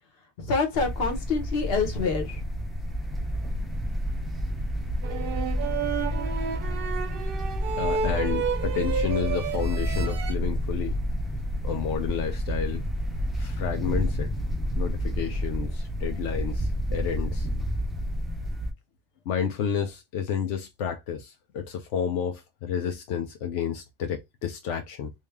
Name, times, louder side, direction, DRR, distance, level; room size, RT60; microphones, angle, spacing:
voice 1, 0.4-2.4, left 4 dB, 55° left, 1.2 m, -26 dB
sound 1, 0.8-18.7, equal, ahead, 0.3 m, -30 dB
sound 2, 5.0-10.3, right 6 dB, 60° right, 0.7 m, -31 dB
voice 2, 7.8-11.0 11.6-12.8 13.4-14.3 14.8-17.5 19.3-25.1, left 7 dB, 85° left, 0.9 m, -30 dB
3.2 x 2.7 x 3.4 m
omnidirectional pair, 1.2 m